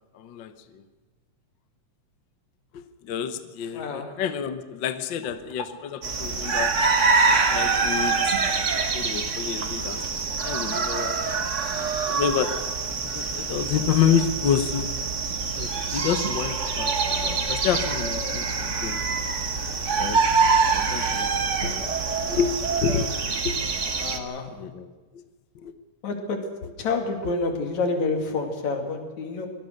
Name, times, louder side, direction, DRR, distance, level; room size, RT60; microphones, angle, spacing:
voice 1, 0.1-0.5 2.7-6.7 7.2-8.3 8.9-10.0 10.4-11.4 12.1-12.5 13.1-14.9 15.5-19.0 20.0-20.2 20.7-21.9 22.3-22.5 22.8-23.1 23.4-23.6 24.5-24.9 25.6-25.7, left 8 dB, 55° left, 10 dB, 1.3 m, -28 dB
voice 2, 3.7-4.1 24.0-24.5 26.0-26.4 26.8-29.5, left 3 dB, 75° left, 4 dB, 3.9 m, -28 dB
sound 1, 6.0-24.2, right 4 dB, 40° right, 1.0 m, -25 dB
23.5 x 19.0 x 6.6 m, 1.3 s
omnidirectional pair, 3.3 m